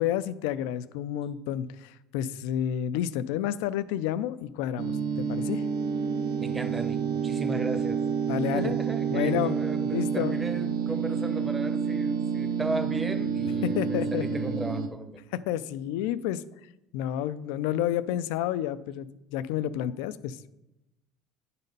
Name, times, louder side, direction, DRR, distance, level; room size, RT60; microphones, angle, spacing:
voice 1, 0.0-5.6 8.3-8.7 9.1-9.5 9.9-10.4 13.6-14.2 15.3-16.4 16.9-20.4, left 11 dB, 80° left, 15 dB, 0.4 m, -30 dB
sound 1, 4.8-14.9, right 6 dB, 65° right, 0.7 m, -29 dB
voice 2, 6.4-8.1 8.5-15.2, right 2 dB, 15° right, 8 dB, 0.8 m, -36 dB
9.7 x 4.1 x 5.3 m, 0.94 s
supercardioid pair, 115°, 0 cm